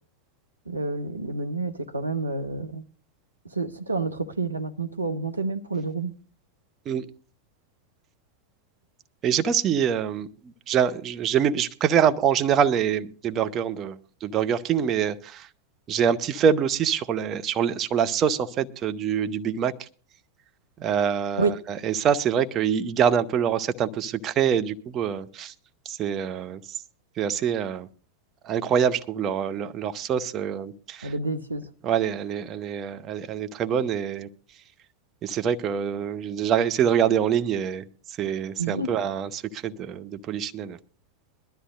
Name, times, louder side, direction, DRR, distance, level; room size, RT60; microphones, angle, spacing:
voice 1, 0.7-2.8 3.4-6.1 21.4-21.6 31.0-31.7 38.6-39.0, right 3 dB, 85° right, 1.0 m, -29 dB
voice 2, 9.2-15.5 15.9-19.9 20.8-25.5 25.8-26.8 27.2-27.9 28.4-31.1 31.8-34.3 35.2-40.8, right 8 dB, 30° right, 0.9 m, -25 dB
21.5 x 13.0 x 2.5 m
figure-of-eight pair, 90°, 0 cm